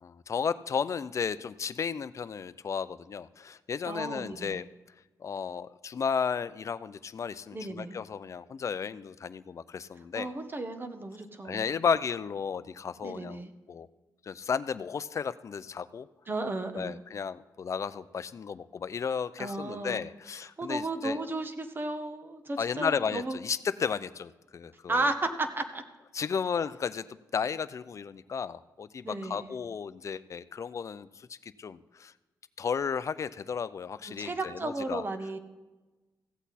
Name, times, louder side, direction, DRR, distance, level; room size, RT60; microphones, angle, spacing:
voice 1, 0.0-4.6 5.2-10.3 11.4-13.9 14.2-16.1 16.7-21.2 22.6-25.1 26.1-32.1 32.6-35.0, left 6 dB, 45° left, 15 dB, 0.4 m, -33 dB
voice 2, 3.8-4.6 7.5-8.0 10.1-11.7 13.0-13.5 16.3-17.0 19.4-20.0 20.6-23.4 24.9-25.8 29.0-29.5 34.0-35.4, right 2 dB, 30° right, 8 dB, 1.1 m, -34 dB
15.5 x 8.2 x 4.2 m, 1.2 s
cardioid pair, 85°, 7 cm